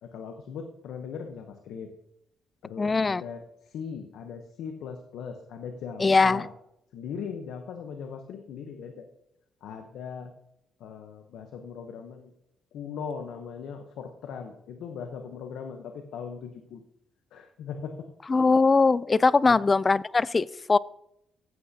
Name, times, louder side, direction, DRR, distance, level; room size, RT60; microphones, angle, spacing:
voice 1, 0.0-1.9 2.6-6.5 6.9-9.1 9.6-10.3 10.8-12.3 12.7-16.8 17.3-18.1 19.4-19.6, left 6 dB, 80° left, 5 dB, 0.8 m, -39 dB
voice 2, 2.8-3.2 6.0-6.4 18.3-20.8, left 4 dB, 30° left, 21 dB, 0.3 m, -21 dB
14.5 x 8.1 x 2.8 m, 0.80 s
cardioid pair, 90°, 0 cm